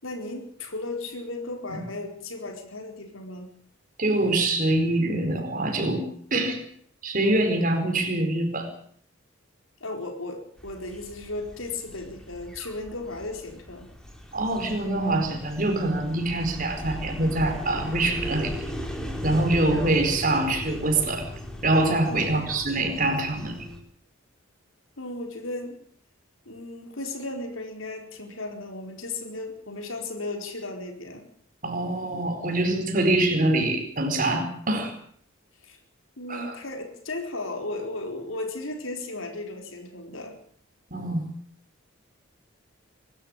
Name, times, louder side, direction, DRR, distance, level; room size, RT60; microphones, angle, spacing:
voice 1, 0.0-3.5 9.8-13.9 22.1-22.5 25.0-25.8 26.5-31.3 35.6-35.8 36.2-40.4, left 2 dB, 80° left, 4 dB, 4.6 m, -35 dB
voice 2, 4.0-6.6 7.0-8.7 14.3-18.5 19.2-21.3 21.6-23.7 31.6-34.9 36.3-36.5 40.9-41.2, right 2 dB, 40° right, 5 dB, 4.7 m, -24 dB
sound 1, 10.6-23.8, left 1 dB, 5° left, 3.7 m, -37 dB
24.5 x 13.0 x 9.0 m, 0.62 s
head